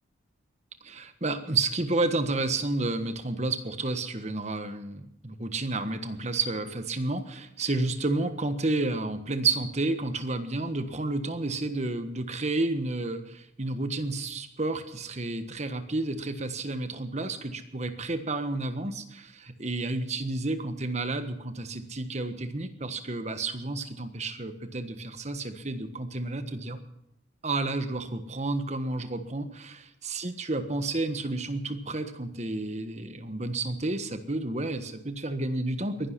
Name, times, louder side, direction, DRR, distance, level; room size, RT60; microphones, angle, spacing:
voice 1, 0.8-26.8 27.4-36.1, right 2 dB, 35° right, 9 dB, 1.4 m, -31 dB
21.5 x 11.0 x 6.0 m, 0.80 s
head